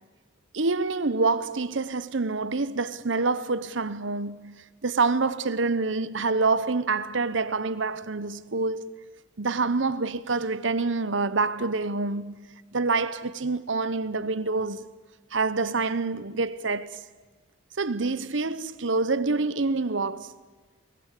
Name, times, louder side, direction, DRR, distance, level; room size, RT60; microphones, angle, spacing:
voice 1, 0.5-4.6 4.8-8.9 9.4-12.4 12.7-14.9 15.3-17.0 17.8-20.3, right 3 dB, 70° right, 1.0 m, -26 dB
29.5 x 23.0 x 8.4 m
head